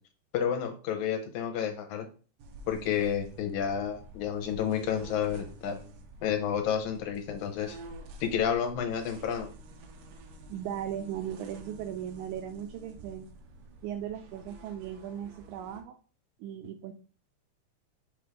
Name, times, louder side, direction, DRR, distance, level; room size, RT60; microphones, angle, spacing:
voice 1, 0.3-2.1 2.7-5.8 6.2-7.8 8.2-9.5, left 8 dB, 80° left, 4 dB, 2.4 m, -30 dB
sound 1, 2.4-15.8, right 2 dB, 70° right, 1.9 m, -49 dB
voice 2, 10.5-13.3 13.8-16.0 16.4-16.9, right 10 dB, 85° right, 6 dB, 2.0 m, -37 dB
6.1 x 3.3 x 5.1 m, 0.38 s
omnidirectional pair, 3.4 m